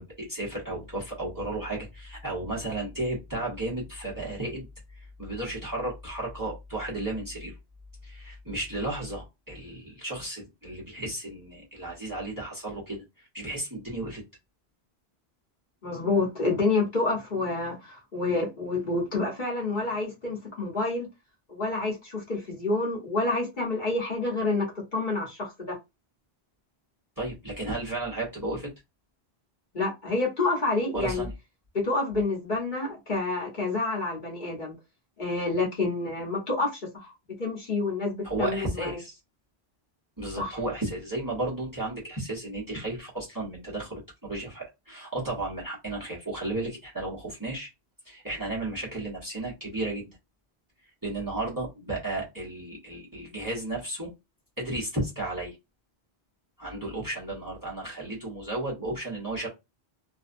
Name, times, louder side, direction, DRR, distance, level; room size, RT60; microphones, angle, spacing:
voice 1, 0.0-4.7 5.2-7.5 8.0-14.2 27.2-28.7 30.9-31.3 38.2-39.2 40.2-47.7 48.0-50.2 51.0-54.1 54.6-55.5 56.6-59.5, right 2 dB, 20° right, 0.9 m, -33 dB
voice 2, 15.8-21.1 21.5-24.7 24.9-25.7 29.7-31.3 31.7-34.8 35.2-37.1 37.4-39.0 40.4-40.5, left 3 dB, 50° left, 1.1 m, -28 dB
2.6 x 2.2 x 2.5 m
omnidirectional pair, 1.0 m